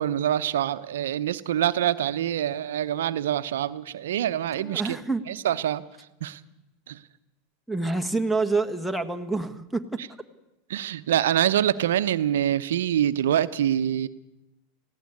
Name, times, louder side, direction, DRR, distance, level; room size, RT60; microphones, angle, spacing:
voice 1, 0.0-5.0 5.3-5.8 6.2-6.4 6.9-7.0 10.0-10.1 10.7-14.1, right 11 dB, 75° right, 13 dB, 0.8 m, -25 dB
voice 2, 4.5-5.2 7.7-10.0, right 3 dB, ahead, 12 dB, 1.6 m, -27 dB
18.5 x 16.0 x 9.6 m, 0.97 s
hypercardioid pair, 95°, 0 cm